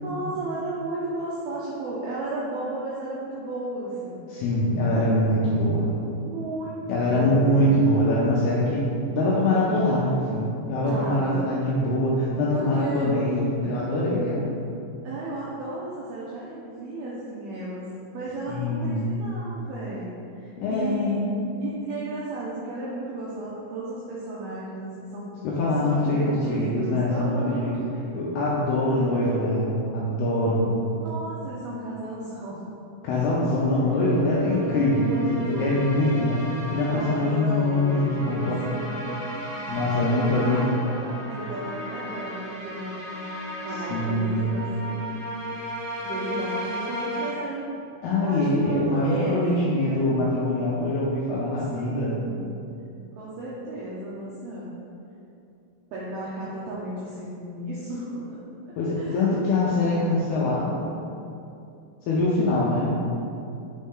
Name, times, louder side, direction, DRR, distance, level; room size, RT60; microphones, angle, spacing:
voice 1, 0.0-4.2 6.2-6.9 7.1-7.7 7.9-8.1 10.8-11.4 12.5-13.1 15.0-20.1 20.4-25.4 25.8-27.7 28.9-29.6 30.9-32.7 34.1-35.8 36.9-39.2 40.1-43.0 43.6-45.0 46.0-47.7 48.2-50.1 51.7-52.6 53.2-54.7 55.9-58.4 59.0-59.3, right 2 dB, 80° right, -7 dB, 2.2 m, -34 dB
voice 2, 4.3-5.9 6.9-8.8 9.1-14.5 18.5-19.2 20.6-21.3 25.4-27.7 28.1-30.7 33.0-38.6 39.7-40.6 43.7-44.7 48.0-52.2 58.8-60.8 62.0-63.0, left 1 dB, 80° left, -6 dB, 2.3 m, -23 dB
sound 1, 33.9-47.3, equal, 60° left, 2.3 m, -35 dB
6.2 x 4.2 x 3.7 m, 2.7 s
omnidirectional pair, 5.3 m